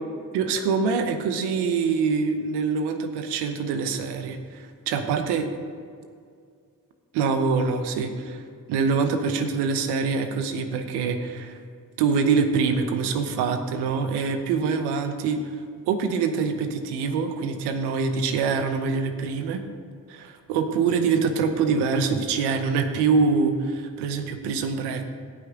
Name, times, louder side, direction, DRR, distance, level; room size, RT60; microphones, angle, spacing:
voice 1, 0.3-5.5 7.1-8.4 8.7-11.5 12.0-15.4 15.9-19.6 20.1-25.1, right 5 dB, 90° right, 7 dB, 0.9 m, -24 dB
17.5 x 6.1 x 3.7 m, 2.2 s
supercardioid pair, 45°, 39 cm